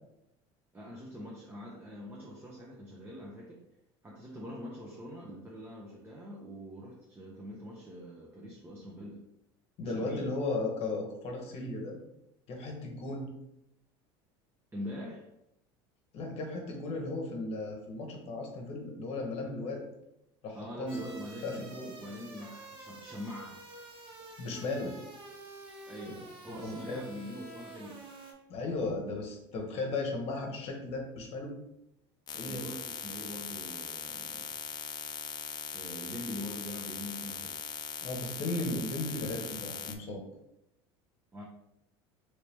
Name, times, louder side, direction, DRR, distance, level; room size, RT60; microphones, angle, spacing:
voice 1, 0.7-3.6 4.0-9.2 9.8-10.3 14.7-15.3 20.5-21.7 22.0-23.7 25.9-28.0 32.5-34.6 35.7-37.6 41.3-41.4, equal, 20° right, -3 dB, 0.7 m, -43 dB
voice 2, 9.8-12.0 12.5-13.3 16.1-19.8 20.4-21.1 21.4-21.9 24.4-24.9 26.6-27.0 28.5-31.5 32.3-32.7 38.0-40.2, left 2 dB, 50° left, 1 dB, 0.9 m, -36 dB
sound 1, 20.9-28.3, right 2 dB, 40° right, 1.0 m, -49 dB
sound 2, 32.3-40.0, left 7 dB, 30° left, 0.4 m, -40 dB
3.2 x 2.8 x 3.3 m, 0.84 s
supercardioid pair, 95°, 13 cm